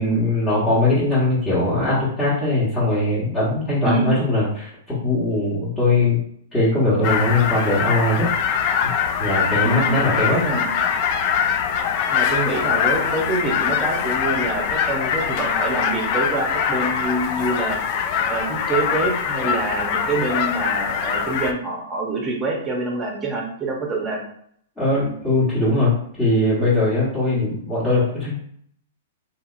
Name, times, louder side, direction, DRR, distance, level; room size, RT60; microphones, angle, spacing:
voice 1, 0.0-6.2 6.5-8.3 8.8-8.9 9.2-10.4 24.8-25.9 26.2-28.4, left 2 dB, 15° left, -11 dB, 1.4 m, -20 dB
sound 1, 7.0-21.5, left 7 dB, 45° left, 0.4 m, -23 dB
voice 2, 9.6-10.0 10.3-10.8 12.1-17.8 18.3-24.2 27.3-27.4, right 2 dB, 20° right, 0 dB, 0.9 m, -26 dB
2.9 x 2.7 x 2.5 m, 0.66 s
hypercardioid pair, 125°, 0 cm